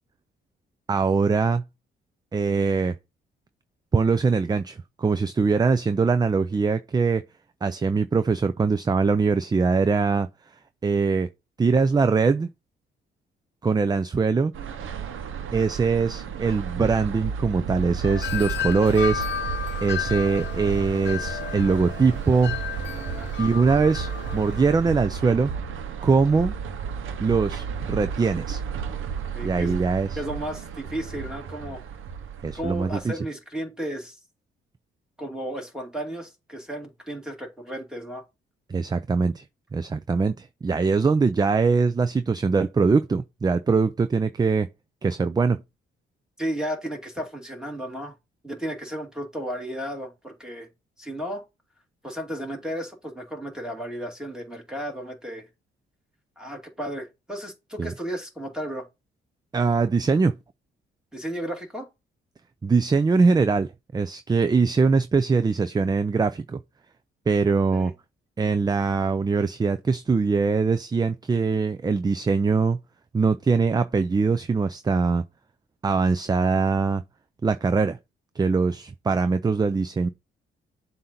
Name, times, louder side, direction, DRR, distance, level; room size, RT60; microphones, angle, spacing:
voice 1, 0.9-1.6 2.3-2.9 3.9-7.2 7.6-10.3 10.8-11.3 11.6-12.5 13.6-14.5 15.5-19.3 19.8-22.6 23.4-25.5 26.0-26.5 27.2-28.6 29.4-30.2 32.4-33.2 38.7-39.4 39.7-44.7 45.0-45.6 57.8-57.9 59.5-60.3 62.6-66.6 67.3-67.9 68.4-72.8 73.1-75.2 75.8-77.0 77.4-78.0 78.4-80.1, right 4 dB, 20° right, 0.4 m, -22 dB
sound 1, 14.5-33.1, right 6 dB, 70° right, 0.8 m, -33 dB
Wind chime, 18.0-24.8, left 9 dB, 55° left, 0.8 m, -33 dB
voice 2, 29.3-29.8 30.2-31.8 32.5-34.2 35.2-38.2 46.4-48.1 48.4-50.7 51.0-51.4 52.0-55.5 56.4-58.9 61.1-61.9 67.7-67.9, equal, 5° right, 2.4 m, -34 dB
7.5 x 2.7 x 5.8 m
cardioid pair, 75°, 21 cm